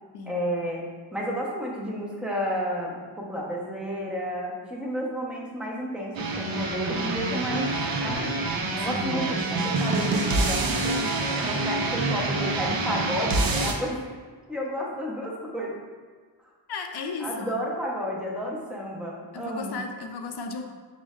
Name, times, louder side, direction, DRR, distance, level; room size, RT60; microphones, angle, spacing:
voice 1, 0.3-7.7 8.0-8.3 8.8-14.0 14.5-15.8 17.2-19.8, equal, ahead, -3 dB, 0.7 m, -31 dB
sound 1, 6.1-13.7, right 2 dB, 55° right, 0.6 m, -26 dB
voice 2, 8.7-9.1 16.7-17.5 19.3-20.6, left 4 dB, 60° left, 4 dB, 0.5 m, -35 dB
6.0 x 2.1 x 3.5 m, 1.5 s
wide cardioid pair, 130°, 44 cm